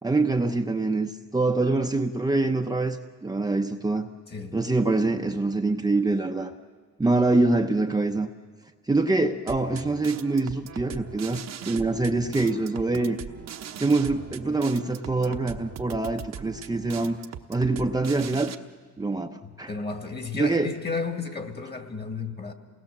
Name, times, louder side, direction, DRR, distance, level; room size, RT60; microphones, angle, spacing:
voice 1, 0.0-4.1 4.5-6.5 7.0-8.3 8.9-13.2 13.8-17.2 17.5-18.5 19.0-19.7 20.3-20.7, right 2 dB, 15° right, 3 dB, 0.8 m, -25 dB
voice 2, 4.3-4.6 19.4-22.5, left 4 dB, 35° left, 6 dB, 2.4 m, -33 dB
sound 1, 9.5-18.5, right 8 dB, 60° right, 1.1 m, -40 dB
27.5 x 19.0 x 7.4 m, 1.5 s
cardioid pair, 90°, 30 cm